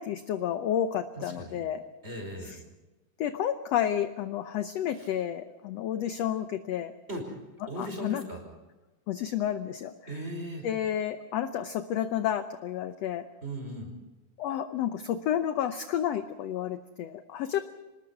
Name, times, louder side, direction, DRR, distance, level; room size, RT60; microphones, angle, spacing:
voice 1, 0.0-1.8 2.4-2.6 3.2-6.9 7.6-8.2 9.1-10.2 10.6-13.2 14.4-17.6, left 10 dB, 70° left, 9 dB, 1.6 m, -31 dB
voice 2, 1.2-1.6 2.0-2.5 5.0-5.1 7.1-7.2 7.7-8.4 10.1-10.7 13.4-13.9, right 1 dB, 15° right, 3 dB, 5.2 m, -37 dB
25.5 x 20.0 x 5.9 m, 1.1 s
omnidirectional pair, 3.8 m